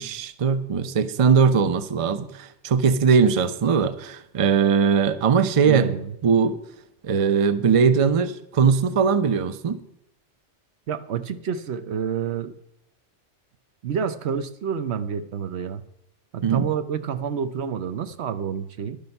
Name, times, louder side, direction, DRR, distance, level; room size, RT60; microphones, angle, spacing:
voice 1, 0.0-5.9 6.2-6.6 7.0-9.8 16.4-16.7, right 6 dB, 35° right, 12 dB, 0.6 m, -20 dB
voice 2, 5.6-6.1 10.9-12.6 13.8-15.8 16.3-19.0, right 7 dB, 70° right, 11 dB, 1.0 m, -28 dB
11.0 x 10.5 x 5.4 m, 0.76 s
omnidirectional pair, 1.2 m